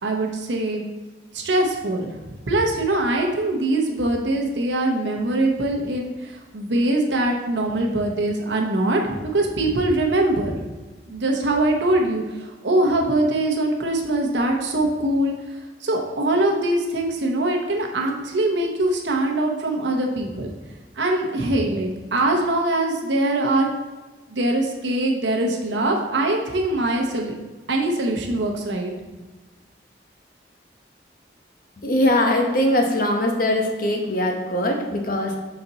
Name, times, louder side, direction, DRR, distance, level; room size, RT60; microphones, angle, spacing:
voice 1, 0.0-0.8 1.3-2.1 2.5-10.5 11.1-20.5 20.9-23.7 24.3-27.3 27.7-28.9, right 1 dB, 80° right, 1 dB, 0.9 m, -22 dB
voice 2, 31.8-35.4, left 1 dB, 50° left, 2 dB, 0.9 m, -21 dB
5.8 x 4.2 x 3.9 m, 1.2 s
head